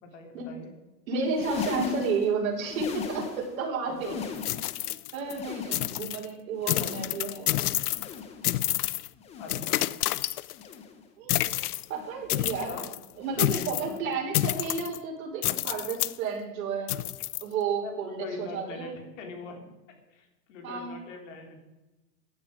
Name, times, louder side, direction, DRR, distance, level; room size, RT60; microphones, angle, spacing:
voice 1, 0.0-0.7 3.8-4.2 6.8-7.2 9.4-9.8 12.7-12.9 13.3-13.6 13.9-14.0 17.8-17.9 18.2-19.6 20.1-21.6, left 4 dB, 50° left, 3 dB, 3.7 m, -42 dB
voice 2, 1.1-4.1 4.8-7.7 11.2-11.5 11.9-12.7 13.2-16.9 17.4-18.9 20.6-20.9, right 4 dB, 55° right, 0 dB, 5.0 m, -32 dB
sound 1, 1.2-3.6 3.9-4.9 5.2-6.2 6.5-7.4 7.8-8.6 9.1-9.8 10.5-11.1 11.8-12.4 13.1-13.6 14.5-14.8 15.8-16.0 17.1-17.2, left 6 dB, 15° left, 1.0 m, -39 dB
sound 2, 4.4-5.4 5.7-6.2 6.7-8.2 8.4-9.1 9.5-10.7 11.3-11.8 12.3-13.0 13.4-13.9 14.3-15.0 15.4-16.2 16.9-17.4, left 15 dB, 65° left, 0.6 m, -29 dB
15.5 x 10.5 x 5.1 m, 1.1 s
supercardioid pair, 165°, 49 cm